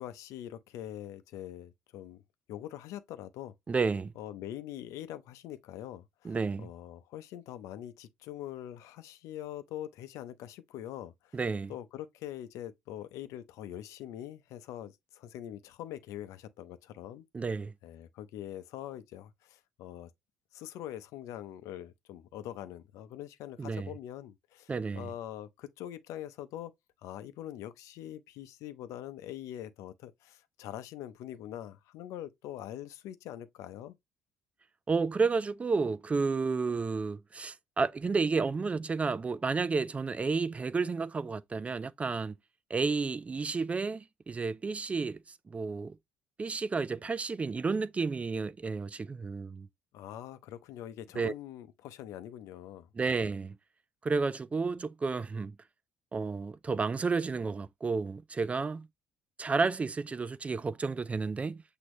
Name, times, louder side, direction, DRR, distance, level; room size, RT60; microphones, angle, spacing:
voice 1, 0.0-2.2 2.5-3.5 4.2-11.4 11.7-17.2 17.8-20.1 20.5-26.7 27.0-34.0 49.9-52.9, left 12 dB, 75° left, 0.6 m, -43 dB
voice 2, 3.7-4.1 6.2-6.7 11.3-11.7 17.3-17.7 23.6-23.9 24.7-25.1 34.9-42.3 42.7-45.2 45.5-46.0 46.4-49.7 51.2-51.3 53.0-53.6 54.0-55.5 56.1-58.9 59.4-61.6, right 4 dB, 25° right, 0.3 m, -31 dB
6.2 x 2.7 x 3.1 m
supercardioid pair, 85°, 5 cm